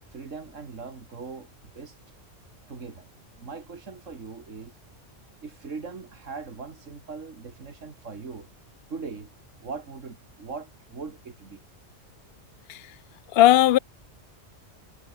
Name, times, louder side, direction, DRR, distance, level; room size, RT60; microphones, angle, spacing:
voice 1, 0.1-1.5 1.7-2.0 2.7-3.1 3.4-4.7 5.4-8.5 8.9-9.3 9.6-11.7, right 4 dB, 85° right, 2.5 m, -40 dB
voice 2, 13.3-13.8, left 14 dB, 60° left, 0.7 m, -17 dB
omnidirectional pair, 1.3 m